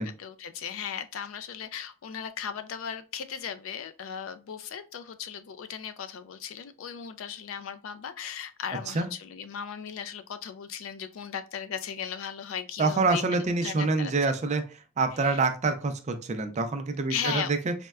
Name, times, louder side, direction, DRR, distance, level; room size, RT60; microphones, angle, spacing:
voice 1, 0.0-14.3 15.2-15.4 17.1-17.5, left 8 dB, 70° left, 0.4 m, -37 dB
voice 2, 12.8-14.6 15.0-17.7, right 3 dB, 35° right, 0.4 m, -26 dB
4.2 x 2.1 x 2.3 m
head